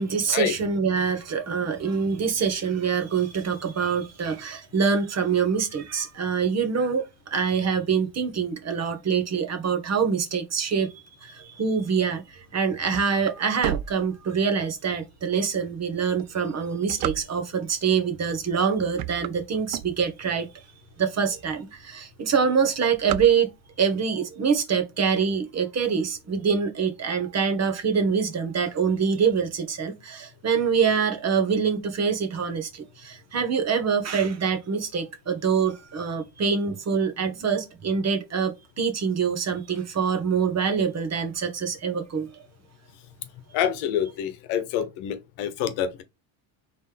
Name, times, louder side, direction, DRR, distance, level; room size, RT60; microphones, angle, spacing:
voice 1, 0.0-7.0 7.3-10.9 11.2-20.5 21.0-23.5 23.8-42.3, right 6 dB, 30° right, 1.1 m, -25 dB
sound 1, 12.4-14.7 15.3-15.4 16.0-17.7 18.4-18.6 18.9-20.4 20.9-21.0 21.2-21.3 21.6-22.0 22.3-23.9, right 13 dB, 50° right, 0.4 m, -33 dB
voice 2, 43.5-46.0, left 9 dB, 75° left, 1.1 m, -27 dB
4.1 x 3.4 x 3.4 m
supercardioid pair, 110°, 49 cm